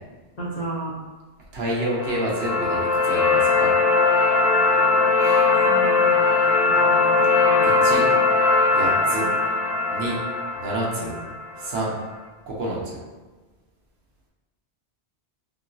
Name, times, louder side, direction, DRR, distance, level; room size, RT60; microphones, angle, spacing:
voice 1, 0.4-0.9 5.6-6.4 6.6-8.2 8.7-8.8 9.2-9.3, right 2 dB, 45° left, -6 dB, 0.6 m, -34 dB
voice 2, 1.5-3.7 5.2-5.4 7.6-8.0 8.7-9.3 9.9-10.2 10.5-11.1 11.6-11.9 12.5-13.0, right 1 dB, 65° right, -4 dB, 1.0 m, -28 dB
sound 1, 1.8-11.9, left 3 dB, 65° left, 0.9 m, -20 dB
2.9 x 2.9 x 2.6 m, 1.3 s
omnidirectional pair, 1.1 m